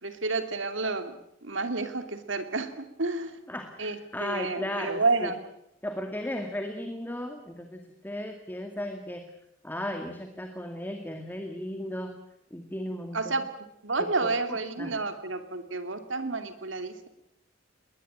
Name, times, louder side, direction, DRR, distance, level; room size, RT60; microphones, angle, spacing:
voice 1, 0.0-3.4 3.8-5.4 13.1-13.5 13.8-17.1, right 3 dB, 70° right, 9 dB, 2.7 m, -30 dB
voice 2, 3.5-5.3 5.8-9.2 9.6-12.2 12.5-13.3 14.2-15.0, left 1 dB, 10° left, 5 dB, 2.2 m, -36 dB
21.0 x 20.5 x 8.9 m, 0.80 s
head